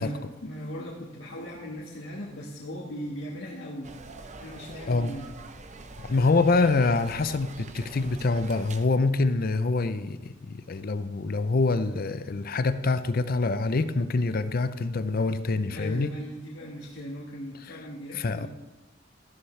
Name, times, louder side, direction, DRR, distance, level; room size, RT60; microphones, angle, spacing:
voice 1, 0.0-3.9 4.4-5.3 15.7-18.5, equal, 80° left, -4 dB, 1.6 m, -38 dB
sound 1, 3.8-8.9, right 3 dB, 40° right, 0.7 m, -44 dB
voice 2, 4.7-5.2 6.0-16.1 17.7-17.8 18.1-18.5, left 3 dB, 50° left, 12 dB, 0.6 m, -25 dB
13.0 x 11.5 x 3.3 m, 1.1 s
head